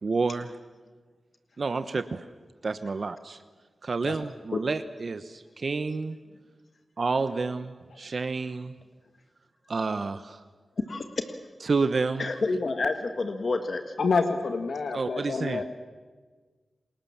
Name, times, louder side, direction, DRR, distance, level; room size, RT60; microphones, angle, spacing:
voice 1, 0.0-0.5 1.6-2.2 2.6-3.4 3.8-6.2 7.0-8.7 9.7-10.4 11.6-12.3 14.9-15.6, right 4 dB, 60° right, 11 dB, 1.0 m, -29 dB
voice 2, 10.9-11.3 12.2-13.8, left 3 dB, 60° left, 7 dB, 1.6 m, -29 dB
voice 3, 14.0-15.6, left 4 dB, 80° left, 7 dB, 1.7 m, -27 dB
29.0 x 21.0 x 7.3 m, 1.4 s
cardioid pair, 45°, 0 cm